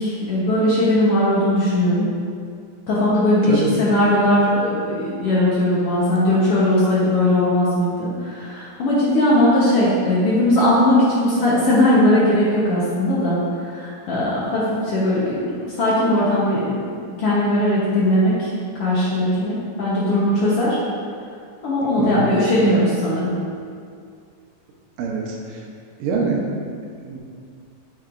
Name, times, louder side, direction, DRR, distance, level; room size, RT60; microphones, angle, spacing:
voice 1, 0.0-2.1 2.9-13.4 13.7-16.6 17.2-18.5 18.8-20.8 21.6-23.3, left 1 dB, 70° left, -7 dB, 1.4 m, -19 dB
voice 2, 22.0-22.3 25.0-25.6 26.0-26.4 27.0-27.2, right 5 dB, 80° right, 0 dB, 2.5 m, -24 dB
8.8 x 6.5 x 2.5 m, 2.3 s
omnidirectional pair, 4.0 m